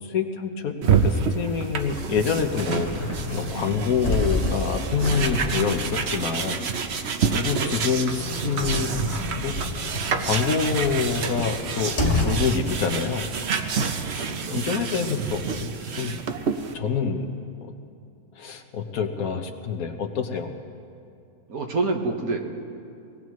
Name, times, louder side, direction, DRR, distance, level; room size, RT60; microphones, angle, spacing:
voice 1, 0.0-6.7 7.3-9.5 10.2-13.3 14.1-15.7 16.0-16.2 16.7-17.3 17.6-17.7 18.4-20.5, left 6 dB, 75° left, 5 dB, 1.5 m, -27 dB
sound 1, 0.8-16.7, right 6 dB, 55° right, 1.0 m, -28 dB
sound 2, 1.8-12.8 13.2-13.3 14.8-15.7, left 2 dB, 40° left, 2.0 m, -30 dB
voice 2, 7.5-7.8 14.1-14.6 21.5-22.4, right 3 dB, 85° right, 2 dB, 1.9 m, -28 dB
24.0 x 18.5 x 3.1 m, 2.6 s
omnidirectional pair, 1.5 m